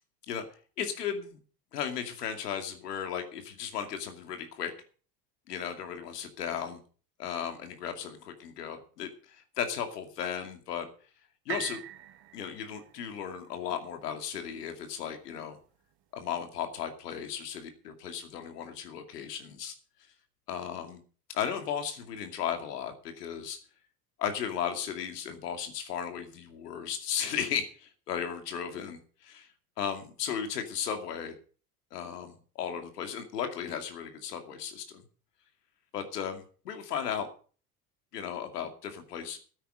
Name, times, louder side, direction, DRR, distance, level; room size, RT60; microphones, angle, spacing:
voice 1, 0.8-1.4 1.7-4.7 5.5-6.8 7.2-10.9 11.5-11.8 12.3-15.6 16.1-19.7 20.5-21.0 21.3-23.6 24.2-29.5 29.8-31.3 31.9-35.0 35.9-37.3 38.1-39.4, left 8 dB, 85° left, 6 dB, 2.5 m, -35 dB
sound 1, 11.5-15.4 16.0-16.1, right 12 dB, 55° right, 2.0 m, -44 dB
13.0 x 9.2 x 6.4 m, 0.42 s
hypercardioid pair, 75°, 46 cm